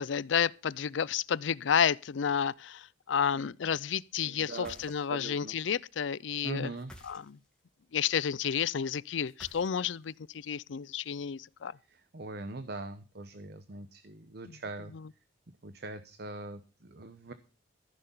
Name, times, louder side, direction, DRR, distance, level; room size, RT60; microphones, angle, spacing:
voice 1, 0.0-2.8 3.1-6.7 7.1-7.2 7.9-10.1 10.5-11.7, left 7 dB, 75° left, 0.5 m, -30 dB
voice 2, 4.2-5.6 6.4-6.9 11.9-14.9 15.6-17.3, right 2 dB, 60° right, 0.9 m, -42 dB
sound 1, 4.5-5.3 6.7-7.6 9.3-10.1, left 1 dB, 5° left, 2.5 m, -53 dB
14.5 x 6.7 x 5.5 m
head